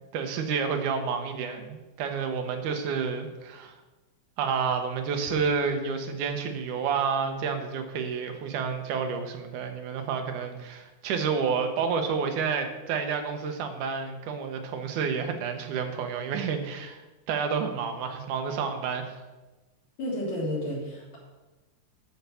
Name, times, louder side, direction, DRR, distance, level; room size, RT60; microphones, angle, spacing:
voice 1, 0.1-3.8 4.4-17.0 17.3-19.2, right 6 dB, 85° right, 6 dB, 2.5 m, -30 dB
voice 2, 20.0-21.2, left 1 dB, 65° left, -5 dB, 4.4 m, -31 dB
11.0 x 4.7 x 6.9 m, 1.1 s
omnidirectional pair, 3.4 m